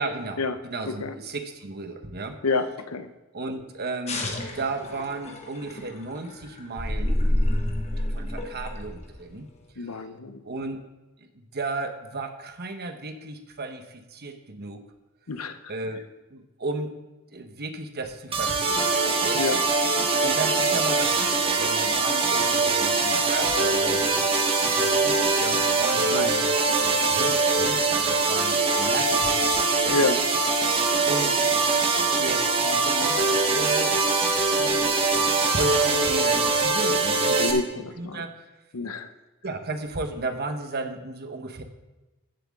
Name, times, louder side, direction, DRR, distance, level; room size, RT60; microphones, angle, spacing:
voice 1, 0.0-2.4 3.3-7.2 8.1-9.5 9.7-10.0 10.4-10.8 11.2-14.8 15.7-17.0 17.3-19.4 20.0-24.3 24.6-29.4 29.8-30.0 31.1-31.4 32.2-34.0 34.5-38.4 39.4-41.6, right 3 dB, 45° right, 6 dB, 1.2 m, -34 dB
voice 2, 2.4-3.1 9.8-10.4 15.3-15.6 19.3-19.6 20.0-20.1 26.1-26.3 29.9-30.2 37.3-38.2 38.7-39.1, left 3 dB, 70° left, 10 dB, 0.8 m, -28 dB
sound 1, 4.1-9.7, left 3 dB, 30° left, 1.3 m, -39 dB
sound 2, 6.8-9.2, left 1 dB, 10° left, 0.3 m, -26 dB
sound 3, 18.3-37.5, right 3 dB, 25° right, 1.4 m, -23 dB
15.0 x 7.9 x 3.7 m, 1.1 s
head